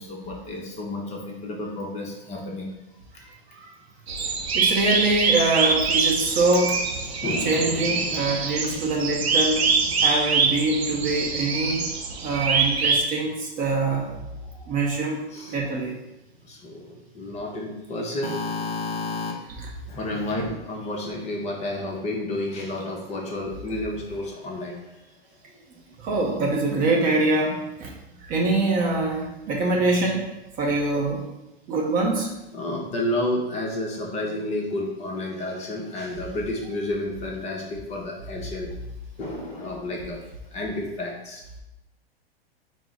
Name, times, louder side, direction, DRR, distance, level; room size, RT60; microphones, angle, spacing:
voice 1, 0.0-2.7 7.1-8.5 9.9-10.0 14.5-14.7 15.3-15.5 16.4-19.3 19.9-24.8 32.5-38.7 39.2-40.3 40.5-41.4, left 1 dB, 20° left, -1 dB, 0.6 m, -31 dB
voice 2, 3.2-3.7 4.5-6.8 7.4-9.6 10.0-11.9 12.2-14.1 14.7-15.2 15.5-16.0 19.6-19.7 26.0-27.9 28.2-30.3 30.6-31.2 31.7-32.3, right 2 dB, 25° right, 0 dB, 0.6 m, -24 dB
sound 1, 4.1-13.0, right 5 dB, 85° right, 0.6 m, -24 dB
4.5 x 2.0 x 3.9 m, 0.94 s
hypercardioid pair, 110°, 31 cm